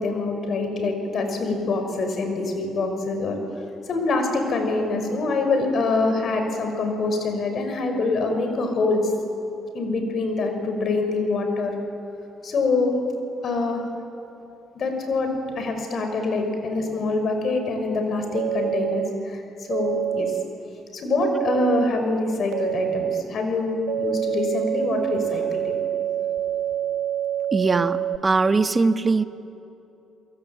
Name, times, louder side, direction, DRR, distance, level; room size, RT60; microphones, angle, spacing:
voice 1, 0.0-3.4 3.9-9.1 9.7-11.7 12.4-13.0 13.4-13.8 14.7-19.4 19.7-20.3 20.9-25.8, left 3 dB, 60° left, 5 dB, 5.8 m, -25 dB
sound 1, 18.3-19.1 19.7-20.4 21.2-21.9 22.5-23.2 23.9-28.2, right 11 dB, 80° right, 0.6 m, -26 dB
voice 2, 27.5-29.2, right 3 dB, 30° right, 10 dB, 1.4 m, -21 dB
29.0 x 22.5 x 8.9 m, 2.9 s
supercardioid pair, 70°, 0 cm